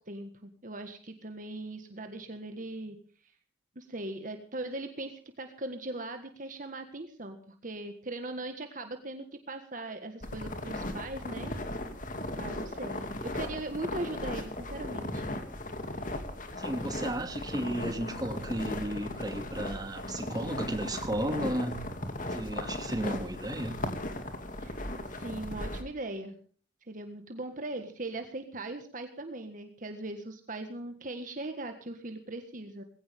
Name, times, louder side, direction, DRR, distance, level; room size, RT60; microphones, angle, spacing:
voice 1, 0.1-3.0 3.7-11.5 12.4-15.3 24.6-24.8 25.2-26.3 26.9-32.8, right 2 dB, 45° right, 1.6 m, -39 dB
sound 1, 10.2-25.8, left 1 dB, 45° left, 2.5 m, -37 dB
voice 2, 16.5-21.8 22.3-23.8, right 1 dB, 20° right, 2.5 m, -34 dB
19.5 x 17.0 x 3.6 m
head